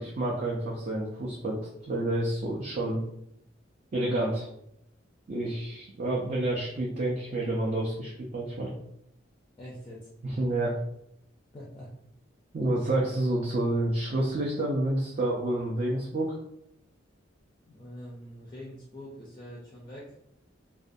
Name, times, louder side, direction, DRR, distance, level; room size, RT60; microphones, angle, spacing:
voice 1, 0.0-1.6 1.9-3.0 3.9-4.5 5.3-8.7 10.2-10.7 12.5-16.4, right 1 dB, 40° right, -4 dB, 0.4 m, -29 dB
voice 2, 9.6-10.1 11.5-11.9 17.7-20.1, equal, 25° left, -4 dB, 0.4 m, -44 dB
2.5 x 2.2 x 2.5 m, 0.75 s
head